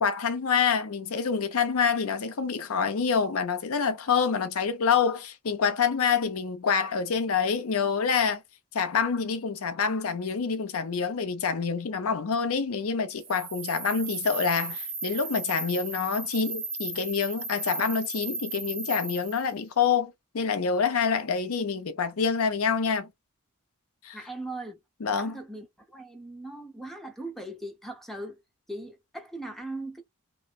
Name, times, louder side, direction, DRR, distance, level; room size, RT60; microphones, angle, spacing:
voice 1, 0.0-8.4 8.7-23.1 24.0-24.2 25.0-25.4, left 6 dB, 70° left, 0.6 m, -27 dB
sound 1, 13.2-19.5, right 3 dB, 55° right, 1.0 m, -36 dB
voice 2, 24.1-24.8 25.2-25.7 25.9-28.4 28.7-30.0, right 2 dB, ahead, 0.7 m, -39 dB
3.0 x 2.1 x 2.3 m
head